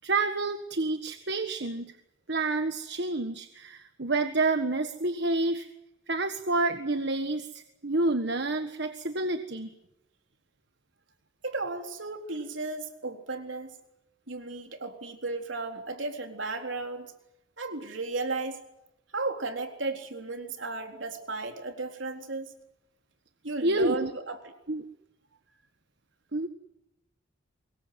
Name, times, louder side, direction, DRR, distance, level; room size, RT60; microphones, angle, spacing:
voice 1, 0.0-1.9 2.3-5.7 6.1-9.7 23.6-24.1 24.7-24.8 26.3-26.5, right 2 dB, 60° right, 8 dB, 1.5 m, -29 dB
voice 2, 11.4-13.8 14.3-17.1 17.6-18.6 19.1-22.5 23.4-24.4, right 3 dB, 75° right, 4 dB, 3.9 m, -34 dB
25.5 x 22.0 x 7.8 m, 0.88 s
head